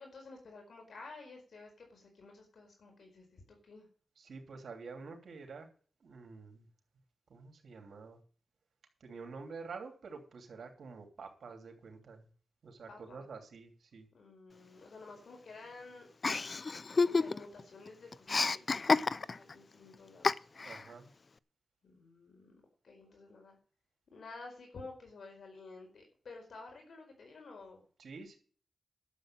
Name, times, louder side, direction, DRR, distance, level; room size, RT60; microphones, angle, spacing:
voice 1, 0.0-3.9 12.9-13.2 14.1-16.1 16.9-20.5 21.8-23.6 24.1-27.8, left 3 dB, 80° left, 2 dB, 4.8 m, -52 dB
voice 2, 4.2-5.7 6.0-6.7 7.3-8.2 9.0-12.3 12.6-14.1 20.1-20.2 20.6-21.1 28.0-28.4, right 4 dB, 80° right, 4 dB, 3.1 m, -48 dB
Chuckle chortle, 16.2-17.6 17.9-19.5 20.2-20.8, left 4 dB, 50° left, 0.6 m, -30 dB
11.5 x 7.6 x 7.6 m, 0.42 s
cardioid pair, 65°, 0 cm